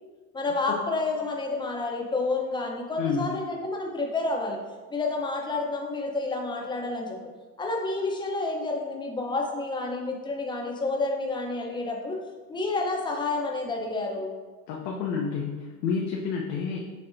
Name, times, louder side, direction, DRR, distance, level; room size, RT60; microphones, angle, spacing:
voice 1, 0.3-4.6 4.9-7.2 7.6-12.2 12.5-14.3, left 3 dB, 10° left, 1 dB, 0.6 m, -29 dB
voice 2, 3.0-3.4 14.7-16.8, left 5 dB, 85° left, -2 dB, 0.7 m, -29 dB
6.2 x 2.7 x 2.5 m, 1.3 s
supercardioid pair, 95°, 48 cm